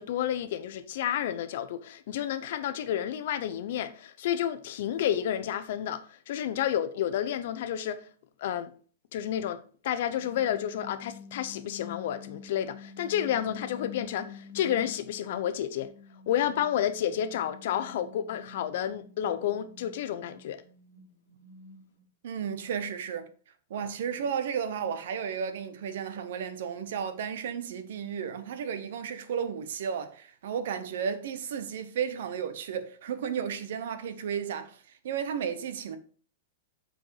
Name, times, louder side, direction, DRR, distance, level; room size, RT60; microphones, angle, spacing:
voice 1, 0.0-8.1 8.4-8.7 9.1-15.9 16.3-20.6, left 10 dB, 55° left, 0.8 m, -30 dB
sound 1, 10.2-15.4 15.8-22.0, left 6 dB, 80° left, 1.5 m, -48 dB
voice 2, 22.2-23.3 23.7-34.8 35.0-36.0, right 7 dB, 65° right, 1.0 m, -33 dB
7.8 x 4.5 x 4.8 m
supercardioid pair, 165°, 0 cm